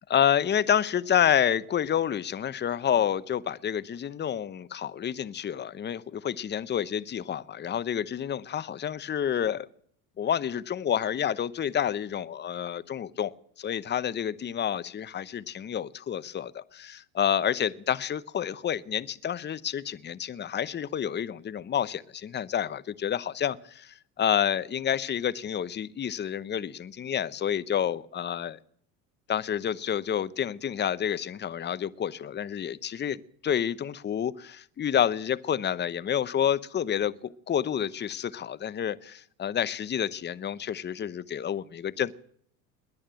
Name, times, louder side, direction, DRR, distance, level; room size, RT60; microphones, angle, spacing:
voice 1, 0.1-9.7 10.2-28.6 29.3-42.1, left 9 dB, 25° left, 18 dB, 0.8 m, -29 dB
21.5 x 8.7 x 7.6 m, 0.64 s
hypercardioid pair, 85°, 40 cm